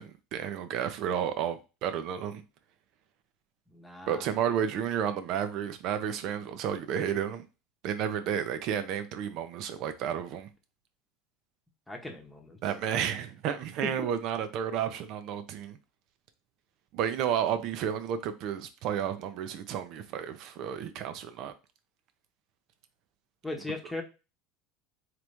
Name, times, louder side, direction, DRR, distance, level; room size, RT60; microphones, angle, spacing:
voice 1, 0.0-2.4 4.1-7.4 7.8-10.5 12.6-15.8 16.9-21.5, right 9 dB, 55° right, 0.7 m, -32 dB
voice 2, 3.7-4.3 11.9-12.6 23.4-24.0, left 2 dB, 10° left, 1.1 m, -38 dB
3.9 x 3.1 x 3.4 m
supercardioid pair, 120°, 0 cm